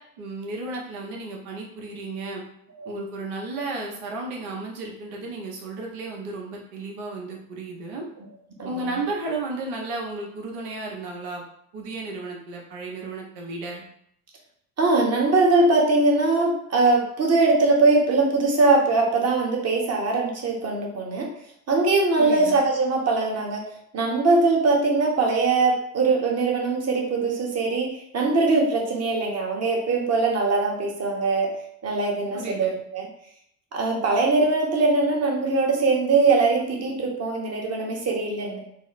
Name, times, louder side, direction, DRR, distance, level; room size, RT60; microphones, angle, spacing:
voice 1, 0.2-2.4 2.8-8.0 8.6-11.4 11.7-13.8 22.2-22.6 32.3-32.8, right 3 dB, 70° right, -1 dB, 1.3 m, -33 dB
voice 2, 14.8-21.3 21.7-23.6 23.9-31.5 31.8-33.1 33.7-38.6, right 3 dB, 35° right, -1 dB, 1.3 m, -21 dB
4.1 x 2.1 x 4.0 m, 0.72 s
hypercardioid pair, 80°, 42 cm